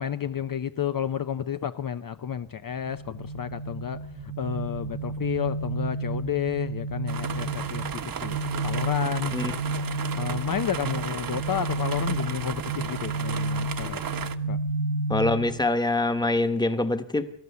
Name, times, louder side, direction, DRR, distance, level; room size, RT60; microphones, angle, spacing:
voice 1, 0.0-8.4 8.6-9.4 10.2-14.0 14.5-14.6, left 9 dB, 45° left, 10 dB, 0.7 m, -31 dB
sound 1, 2.8-15.6, right 2 dB, 80° right, 1.6 m, -31 dB
sound 2, 7.1-14.4, right 7 dB, 45° right, 1.1 m, -35 dB
voice 2, 15.1-17.3, left 2 dB, 10° left, 8 dB, 1.3 m, -24 dB
28.5 x 14.0 x 7.0 m, 0.71 s
wide cardioid pair, 165°, 47 cm